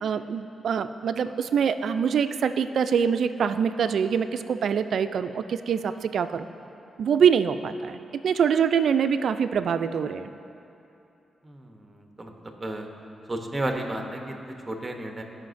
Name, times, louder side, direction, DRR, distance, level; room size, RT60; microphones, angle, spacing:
voice 1, 0.0-6.5 7.0-10.3, right 7 dB, 70° right, 11 dB, 0.3 m, -24 dB
voice 2, 11.4-12.9 13.3-15.2, right 1 dB, 15° right, 3 dB, 0.8 m, -33 dB
16.0 x 5.7 x 2.6 m, 2.8 s
cardioid pair, 95°, 0 cm